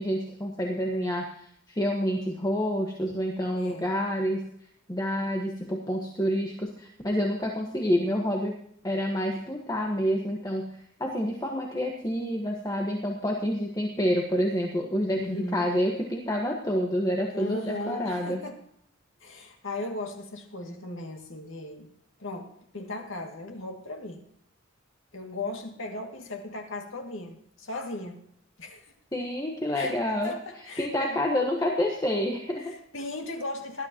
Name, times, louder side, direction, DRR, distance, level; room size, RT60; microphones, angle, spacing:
voice 1, 0.0-4.5 4.9-8.6 8.8-10.7 11.0-18.4 29.1-30.3 30.8-32.7, equal, 20° left, 0 dB, 1.4 m, -28 dB
voice 2, 3.6-3.9 15.2-15.7 17.3-18.6 19.2-21.9 22.2-24.2 25.1-28.2 28.6-28.9 29.8-31.2 32.6-33.9, left 2 dB, 80° left, 2 dB, 2.3 m, -37 dB
19.0 x 12.0 x 3.0 m, 0.70 s
head